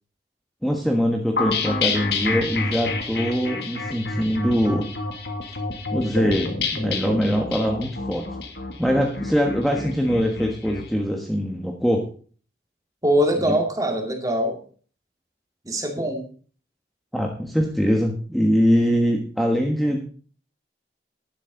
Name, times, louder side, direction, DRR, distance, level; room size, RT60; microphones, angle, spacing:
voice 1, 0.6-4.9 5.9-8.3 8.8-12.1 16.0-16.1 17.1-20.0, equal, ahead, 1 dB, 1.3 m, -22 dB
sound 1, 1.4-10.8, left 3 dB, 75° left, 2.3 m, -28 dB
voice 2, 13.0-14.6 15.7-16.3, equal, 20° right, 4 dB, 2.2 m, -22 dB
11.5 x 11.5 x 3.9 m, 0.41 s
head